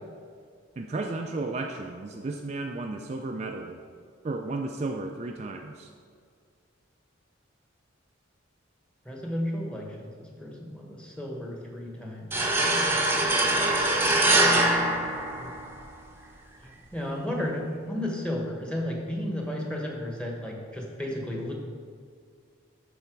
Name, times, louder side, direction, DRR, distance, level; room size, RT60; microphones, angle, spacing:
voice 1, 0.8-3.8 4.2-5.9, right 2 dB, 35° right, 3 dB, 0.3 m, -33 dB
voice 2, 9.0-12.3 15.4-15.6 16.6-21.5, left 1 dB, 5° left, -1 dB, 1.1 m, -33 dB
sound 1, 12.3-15.9, right 1 dB, 10° right, 0.7 m, -23 dB
12.5 x 4.2 x 4.6 m, 2.1 s
head